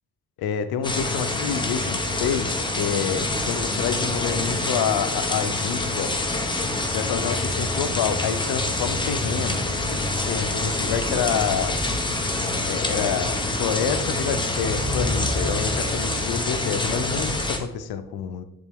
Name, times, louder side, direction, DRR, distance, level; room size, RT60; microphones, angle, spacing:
voice 1, 0.4-6.1 6.9-9.6 10.3-11.8 12.7-18.4, left 7 dB, 90° left, 10 dB, 0.6 m, -28 dB
sound 1, 0.8-17.6, left 2 dB, 15° left, 0.9 m, -26 dB
10.5 x 3.8 x 3.6 m, 0.86 s
cardioid pair, 110°, 36 cm